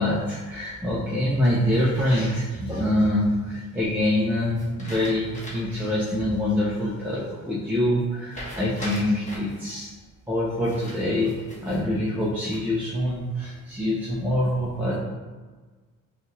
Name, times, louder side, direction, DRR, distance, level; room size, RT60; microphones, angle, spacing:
voice 1, 0.0-9.9 10.3-15.0, left 1 dB, 5° right, -8 dB, 0.7 m, -25 dB
sound 1, 1.4-2.4 4.6-5.8 6.2-6.3 8.3-9.6 10.6-11.8 12.3-12.9, equal, 20° left, 1.3 m, -40 dB
5.3 x 2.5 x 3.2 m, 1.3 s
cardioid pair, 125°, 33 cm